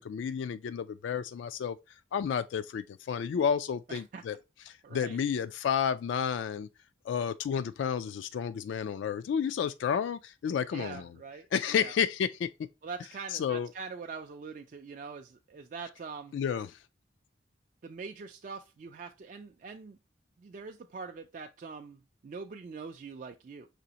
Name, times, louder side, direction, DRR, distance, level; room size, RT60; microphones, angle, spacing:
voice 1, 0.0-1.8 2.1-4.4 4.7-6.7 7.1-11.1 11.5-12.5 13.3-13.7 16.3-16.8, left 7 dB, 85° left, 0.3 m, -31 dB
voice 2, 3.9-4.2 4.8-5.2 10.7-11.9 12.8-16.4 17.8-20.0 20.4-23.7, right 5 dB, 45° right, 0.3 m, -43 dB
5.0 x 3.4 x 2.8 m
head